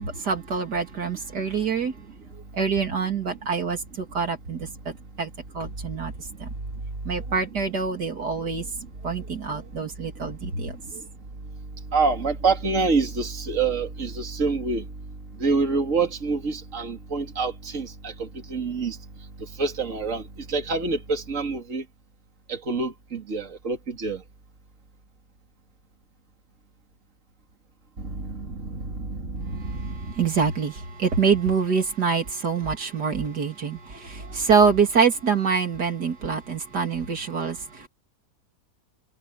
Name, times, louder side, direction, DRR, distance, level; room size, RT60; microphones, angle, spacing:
voice 1, 0.0-1.9 2.5-4.7 5.2-5.3 5.5-6.1 6.4-6.5 7.0-8.7 9.0-11.0 29.6-37.9, right 5 dB, 75° right, 3.3 m, -25 dB
voice 2, 11.9-14.8 15.4-19.0 19.6-20.2 20.5-21.8 22.5-24.2 28.0-30.1, right 4 dB, 50° right, 2.9 m, -26 dB
omnidirectional pair, 1.7 m